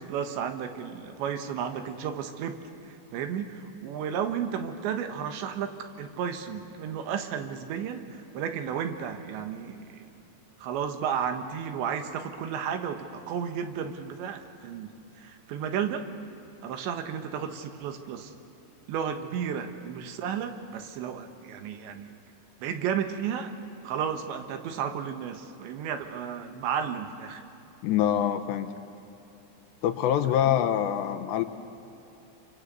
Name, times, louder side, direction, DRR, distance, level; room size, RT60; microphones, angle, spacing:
voice 1, 0.0-10.1 10.6-16.1 16.6-18.3 18.9-22.1 22.6-23.5 23.8-27.4, right 8 dB, 75° right, 7 dB, 3.5 m, -33 dB
voice 2, 27.8-28.7 29.8-31.4, left 10 dB, 75° left, 8 dB, 3.0 m, -25 dB
28.5 x 25.0 x 8.2 m, 2.9 s
omnidirectional pair, 5.4 m